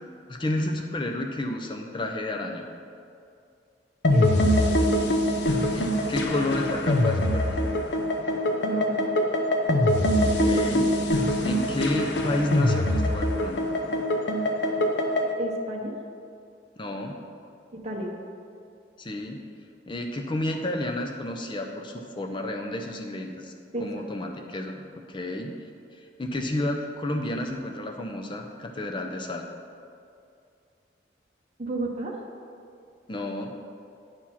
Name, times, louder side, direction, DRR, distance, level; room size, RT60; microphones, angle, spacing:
voice 1, 0.3-2.7 5.7-7.6 10.2-10.9 11.4-13.6 16.8-17.2 19.0-19.4 19.9-23.5 23.8-25.6 26.2-29.4 33.1-33.5, left 1 dB, 30° left, 4 dB, 0.5 m, -31 dB
sound 1, 4.0-15.3, left 1 dB, 80° left, 0.7 m, -24 dB
voice 2, 4.1-5.0 8.7-9.1 15.4-15.9 17.7-18.1 23.7-24.1 31.6-32.2, right 1 dB, 35° right, 0 dB, 0.8 m, -32 dB
8.6 x 4.7 x 5.6 m, 2.4 s
head